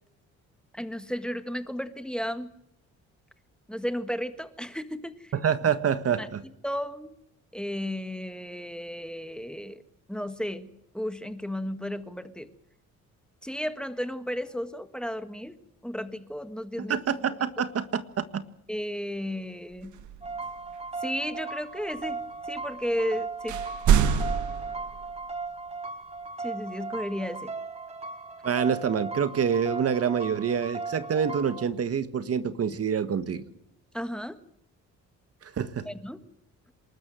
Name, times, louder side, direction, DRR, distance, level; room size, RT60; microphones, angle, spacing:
voice 1, 0.7-2.6 3.7-5.3 6.2-6.3 6.6-7.2 7.5-9.8 10.1-12.5 13.4-15.6 15.8-17.0 18.7-20.0 21.0-23.6 26.4-27.5 33.9-34.4 35.8-36.2, equal, 5° left, 10 dB, 1.7 m, -34 dB
voice 2, 5.4-6.4 16.9-18.4 28.4-33.4 35.4-35.9, right 7 dB, 50° right, 11 dB, 1.6 m, -27 dB
sound 1, 19.7-21.0 21.9-22.7 22.9-23.0 23.3-25.3, right 8 dB, 75° right, 1.7 m, -27 dB
sound 2, 20.2-31.7, right 3 dB, 20° right, 2.2 m, -37 dB
27.0 x 13.0 x 9.1 m, 0.77 s
cardioid pair, 90°, 30 cm